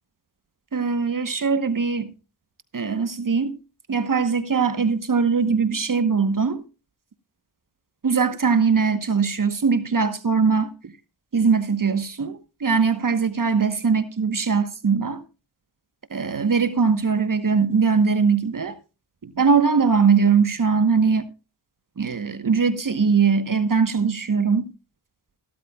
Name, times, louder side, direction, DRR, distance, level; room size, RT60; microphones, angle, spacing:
voice 1, 0.7-2.1 2.7-3.6 3.9-6.6 8.0-10.9 11.3-15.2 16.1-18.7 19.2-21.2 22.0-24.7, right 5 dB, 50° right, 1.2 m, -21 dB
14.5 x 12.5 x 2.3 m
cardioid pair, 40°, 42 cm